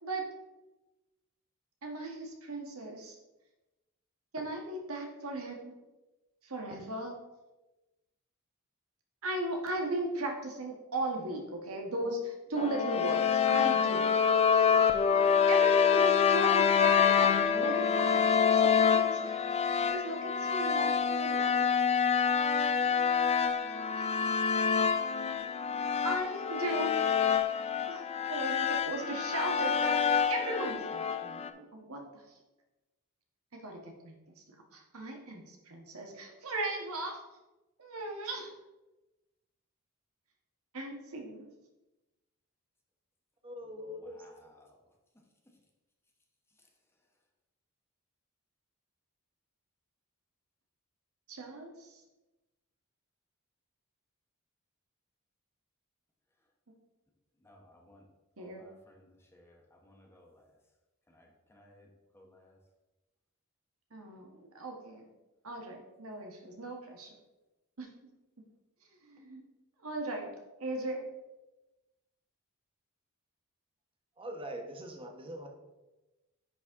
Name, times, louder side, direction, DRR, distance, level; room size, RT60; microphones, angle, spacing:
voice 1, 1.8-3.1 4.3-5.7 6.4-7.1 9.2-14.1 15.5-19.4 19.9-21.7 23.9-24.1 26.0-27.4 27.9-32.0 33.6-34.1 34.7-37.2 37.8-38.5 40.7-41.4 51.3-51.9 58.4-58.6 63.9-65.1 65.4-67.1 67.8-67.9 69.0-69.4 69.8-70.3 70.6-71.0, right 2 dB, 70° right, 2 dB, 1.4 m, -37 dB
sound 1, 12.6-31.5, left 7 dB, 30° left, 0.4 m, -27 dB
voice 2, 43.4-44.2 74.2-75.5, equal, 25° right, 2 dB, 1.0 m, -42 dB
voice 3, 44.0-44.7 57.4-58.0 58.4-60.4 61.1-61.9 62.1-62.5, left 1 dB, 10° left, 0 dB, 1.0 m, -60 dB
9.9 x 4.2 x 3.6 m, 1.1 s
head